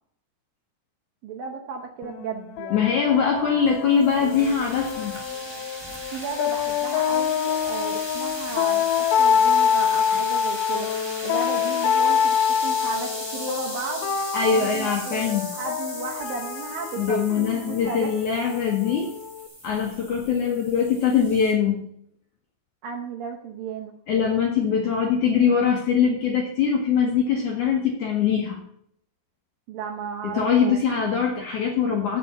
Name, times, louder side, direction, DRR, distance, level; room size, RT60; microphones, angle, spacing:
voice 1, 1.2-2.9 6.1-15.2 15.5-18.1 22.8-23.9 29.7-30.8, right 5 dB, 75° right, 1 dB, 2.2 m, -34 dB
sound 1, 2.0-19.5, left 8 dB, 85° left, 3.0 m, -26 dB
voice 2, 2.7-5.1 14.3-15.5 17.0-19.1 19.6-21.9 24.1-28.6 30.2-32.2, left 7 dB, 65° left, 0 dB, 2.0 m, -22 dB
sound 2, 3.3-21.5, equal, 10° right, 1.6 m, -38 dB
7.9 x 7.4 x 6.9 m, 0.68 s
omnidirectional pair, 5.1 m